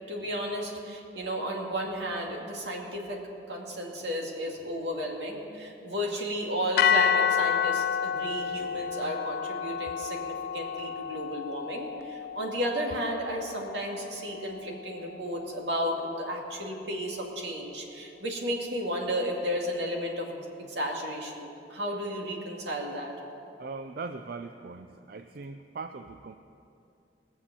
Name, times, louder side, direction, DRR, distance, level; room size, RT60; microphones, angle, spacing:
voice 1, 0.1-3.2 3.5-20.4 20.7-23.1, equal, 80° right, -1 dB, 2.2 m, -33 dB
sound 1, 6.8-15.0, left 8 dB, 60° left, 0.3 m, -30 dB
voice 2, 23.6-26.4, right 4 dB, 55° right, 8 dB, 0.4 m, -40 dB
20.0 x 7.2 x 7.0 m, 2.7 s
head